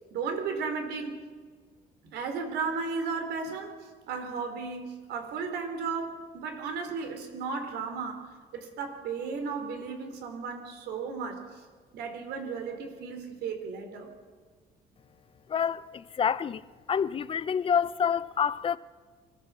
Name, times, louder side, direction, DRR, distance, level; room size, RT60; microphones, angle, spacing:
voice 1, 0.1-1.2 2.1-3.8 4.1-8.2 8.5-11.4 11.9-14.1, right 5 dB, 75° right, 4.0 m, -34 dB
voice 2, 15.5-16.6 16.9-18.8, left 7 dB, 30° left, 0.7 m, -27 dB
24.0 x 15.5 x 7.6 m
cardioid pair, 110°, 17 cm